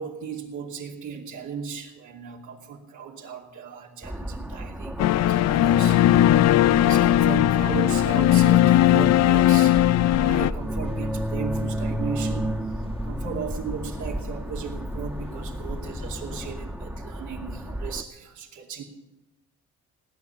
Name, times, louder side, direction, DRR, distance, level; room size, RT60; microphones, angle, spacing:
voice 1, 0.0-6.0 6.6-9.8 10.2-12.5 13.0-18.8, right 6 dB, 80° right, 1 dB, 2.6 m, -36 dB
sound 1, 4.0-18.0, right 1 dB, 5° right, 1.1 m, -33 dB
sound 2, 5.0-10.5, left 13 dB, 60° left, 0.4 m, -18 dB
sound 3, 9.9-16.5, left 4 dB, 20° left, 0.7 m, -40 dB
17.5 x 10.0 x 7.0 m, 1.0 s
cardioid pair, 90°, 30 cm